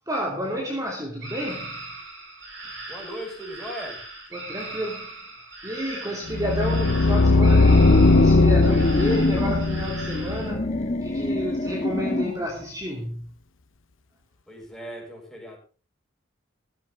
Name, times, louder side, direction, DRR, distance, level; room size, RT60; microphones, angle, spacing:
voice 1, 0.1-1.9 4.3-5.3 5.6-13.3, equal, 15° right, 3.0 m, -31 dB
sound 1, 1.2-10.5, right 2 dB, 70° right, 7.0 m, -39 dB
voice 2, 2.9-4.0 14.5-15.6, equal, 5° left, 6.6 m, -38 dB
sound 2, 6.3-11.3, left 3 dB, 80° left, 0.9 m, -19 dB
sound 3, 7.4-9.7 10.3-12.5, left 1 dB, 35° left, 1.5 m, -26 dB
15.5 x 15.0 x 3.6 m
head